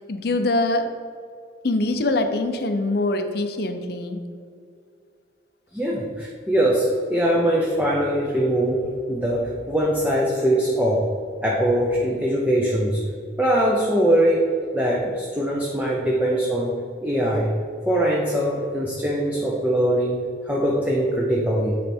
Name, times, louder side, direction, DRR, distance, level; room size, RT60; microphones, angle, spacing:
voice 1, 0.1-0.9 1.6-4.2, left 2 dB, 55° left, 7 dB, 0.5 m, -23 dB
voice 2, 5.7-8.8 9.1-11.1 11.4-13.0 13.4-14.4 14.7-17.5 17.9-21.8, right 1 dB, 10° right, -4 dB, 0.6 m, -22 dB
9.9 x 3.3 x 4.3 m, 2.3 s
head